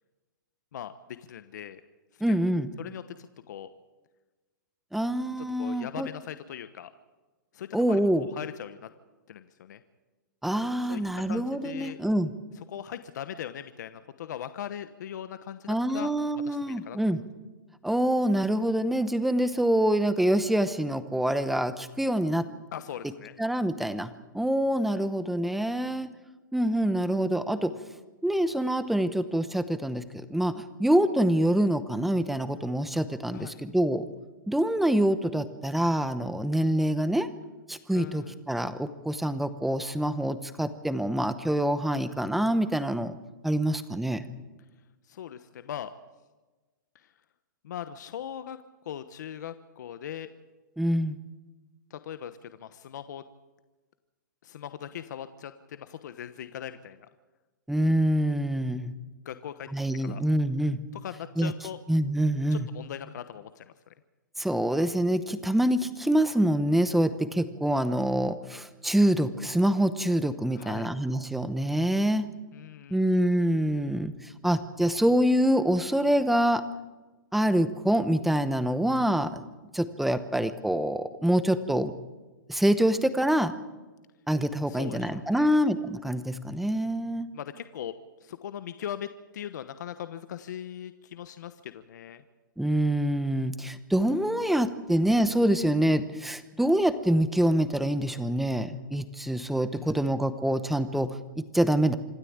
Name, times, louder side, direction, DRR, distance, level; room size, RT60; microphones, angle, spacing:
voice 1, 0.7-1.8 2.1-3.7 5.6-6.9 7.5-8.9 9.3-9.8 10.8-11.0 11.3-12.0 12.7-16.1 16.4-17.2 22.7-23.3 33.3-33.6 37.9-38.4 45.1-45.9 46.9-47.1 47.6-50.3 51.9-53.2 54.4-57.1 59.2-60.2 60.9-61.8 62.5-63.7 70.5-70.9 72.5-73.0 84.7-85.6 87.3-87.9 88.2-89.1 89.3-92.2 99.8-100.1, left 10 dB, 60° left, 11 dB, 1.1 m, -40 dB
voice 2, 2.2-2.7 4.9-6.1 7.7-8.3 10.4-12.3 15.7-17.2 17.8-22.5 23.4-26.1 26.5-27.7 28.2-34.1 34.5-37.3 37.7-43.1 43.4-44.2 50.8-51.2 57.7-58.9 59.7-60.8 61.4-61.5 61.9-62.7 64.4-72.3 72.9-74.1 74.4-76.6 77.3-79.4 79.7-81.9 82.5-83.5 84.3-87.3 92.6-102.0, right 1 dB, ahead, 12 dB, 0.9 m, -26 dB
26.5 x 12.5 x 8.8 m, 1.2 s
hypercardioid pair, 155°, 11 cm